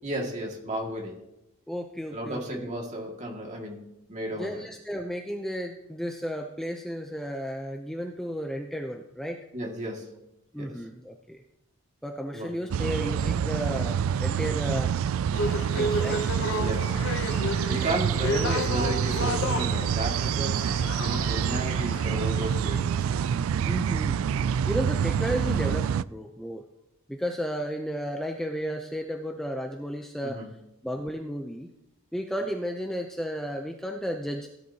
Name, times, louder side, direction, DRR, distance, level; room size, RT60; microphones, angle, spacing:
voice 1, 0.0-1.2 2.1-4.6 9.5-10.1 10.6-10.8 12.3-12.5 16.5-17.0 17.7-20.7 21.0-23.1 30.2-30.5, right 1 dB, 35° right, 0 dB, 2.2 m, -33 dB
voice 2, 1.7-2.7 4.3-9.4 10.5-11.4 12.0-14.9 15.8-16.2 17.8-18.0 23.6-24.2 24.7-26.6 27.1-30.4 30.8-31.7 32.1-34.5, equal, ahead, 3 dB, 0.6 m, -33 dB
sound 1, 12.7-26.0, right 8 dB, 70° right, 0.3 m, -27 dB
sound 2, 15.3-22.6, left 1 dB, 55° left, 0.7 m, -32 dB
16.5 x 10.5 x 2.9 m, 0.86 s
head